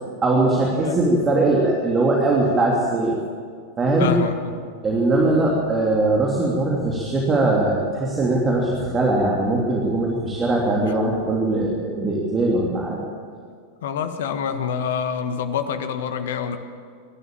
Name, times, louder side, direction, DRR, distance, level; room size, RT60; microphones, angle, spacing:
voice 1, 0.2-3.2 3.8-4.1 4.8-13.0, right 2 dB, 20° right, -2 dB, 3.1 m, -20 dB
voice 2, 4.0-4.5 13.8-16.6, left 7 dB, 55° left, 9 dB, 1.6 m, -26 dB
23.5 x 12.5 x 8.9 m, 2.1 s
figure-of-eight pair, 90°, 0 cm